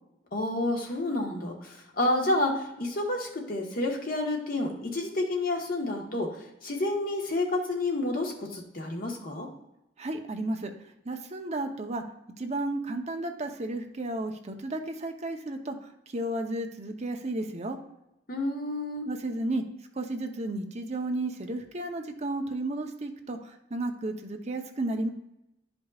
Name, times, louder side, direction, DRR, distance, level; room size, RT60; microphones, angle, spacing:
voice 1, 0.3-9.5 18.3-19.1, left 2 dB, 55° left, 1 dB, 1.3 m, -29 dB
voice 2, 10.0-10.7 11.0-12.0 12.4-17.8 19.0-19.6 19.9-25.1, right 2 dB, 40° right, 4 dB, 0.8 m, -33 dB
10.5 x 5.2 x 2.4 m, 0.88 s
head